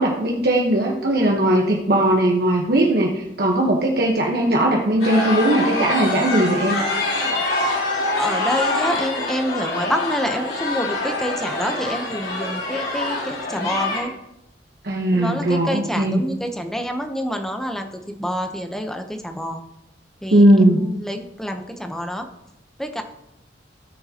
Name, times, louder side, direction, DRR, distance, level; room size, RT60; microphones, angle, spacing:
voice 1, 0.0-6.8 14.8-16.2 20.3-20.8, right 1 dB, 60° right, -1 dB, 1.1 m, -18 dB
sound 1, 5.0-14.0, left 2 dB, 65° left, 3.7 m, -25 dB
voice 2, 8.2-14.1 15.1-17.9 18.2-19.6 20.2-22.3 22.8-23.0, equal, 5° left, 5 dB, 0.8 m, -27 dB
17.5 x 6.6 x 2.9 m, 0.87 s
head